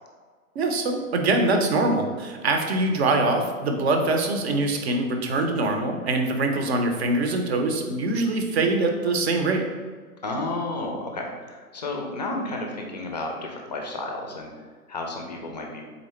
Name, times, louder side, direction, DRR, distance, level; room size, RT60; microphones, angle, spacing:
voice 1, 0.6-9.7, right 2 dB, 45° right, 4 dB, 0.7 m, -23 dB
voice 2, 10.2-14.5 14.9-15.8, left 2 dB, 30° left, 2 dB, 0.4 m, -32 dB
4.0 x 3.4 x 3.2 m, 1.5 s
figure-of-eight pair, 120°, 45 cm